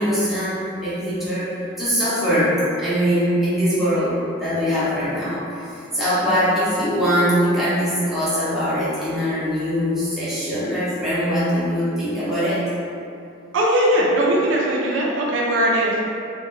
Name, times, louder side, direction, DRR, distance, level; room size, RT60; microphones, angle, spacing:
voice 1, 0.0-1.5 1.8-12.7, equal, ahead, -12 dB, 0.6 m, -22 dB
voice 2, 13.5-16.0, right 1 dB, 75° right, -4 dB, 0.4 m, -19 dB
2.2 x 2.1 x 3.1 m, 2.5 s
head